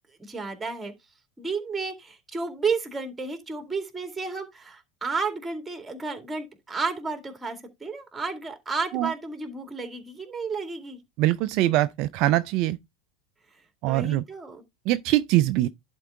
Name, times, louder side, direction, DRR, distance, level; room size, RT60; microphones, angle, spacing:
voice 1, 0.2-0.9 1.4-11.0 13.9-14.6, right 4 dB, 15° right, 2.2 m, -32 dB
voice 2, 11.2-12.8 13.8-14.2 14.9-15.7, right 15 dB, 55° right, 0.4 m, -23 dB
11.0 x 4.5 x 3.6 m
hypercardioid pair, 85°, 0 cm